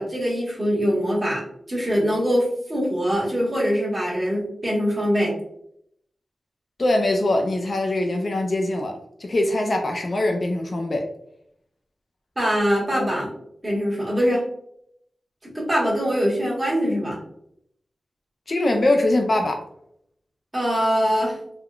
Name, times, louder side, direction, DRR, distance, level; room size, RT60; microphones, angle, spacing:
voice 1, 0.0-1.4 1.7-5.3 12.4-13.3 13.6-14.4 15.4-17.2 20.5-21.4, equal, 20° right, -5 dB, 1.1 m, -23 dB
voice 2, 6.8-8.9 9.2-11.0 18.5-19.6, left 1 dB, 40° left, 3 dB, 0.3 m, -22 dB
3.5 x 2.2 x 2.3 m, 0.74 s
wide cardioid pair, 140°, 0 cm